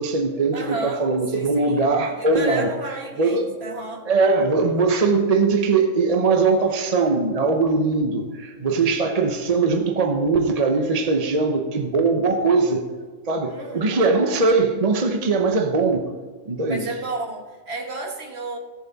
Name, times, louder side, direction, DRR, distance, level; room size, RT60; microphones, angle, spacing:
voice 1, 0.0-2.7 3.2-3.5 4.1-12.9 13.3-16.0 16.5-16.9, right 3 dB, 35° right, 4 dB, 0.8 m, -20 dB
voice 2, 0.5-1.1 1.3-4.1 13.5-14.0 16.7-18.6, right 3 dB, 50° right, 2 dB, 1.7 m, -32 dB
16.0 x 7.3 x 4.0 m, 1.5 s
omnidirectional pair, 1.4 m